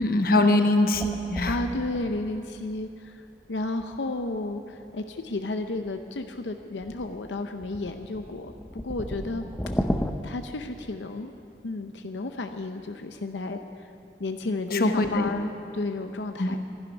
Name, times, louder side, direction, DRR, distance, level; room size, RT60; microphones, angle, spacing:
voice 1, 0.0-1.6 14.7-15.3 16.4-16.5, left 2 dB, 55° left, 6 dB, 1.0 m, -22 dB
sound 1, 0.9-2.8 3.8-4.1 6.8-10.1, equal, 10° left, 0.5 m, -33 dB
voice 2, 1.4-3.2 3.5-9.4 9.7-9.9 10.2-11.3 11.6-13.9 14.2-16.6, left 2 dB, 85° left, 7 dB, 0.7 m, -32 dB
12.0 x 11.5 x 10.0 m, 2.7 s
head